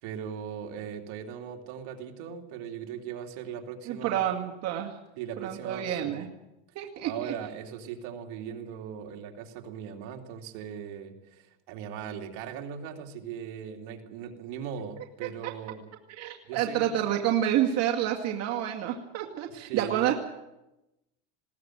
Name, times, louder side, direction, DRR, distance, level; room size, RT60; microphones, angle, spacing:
voice 1, 0.0-4.3 5.2-6.2 7.0-15.9 16.5-17.0 19.5-20.1, right 8 dB, 75° right, 3 dB, 3.1 m, -39 dB
voice 2, 3.9-5.0 5.4-6.3 6.8-7.3 15.4-15.5 16.2-20.1, right 11 dB, 50° right, 2 dB, 2.2 m, -29 dB
20.5 x 17.5 x 7.9 m, 0.93 s
supercardioid pair, 125°, 32 cm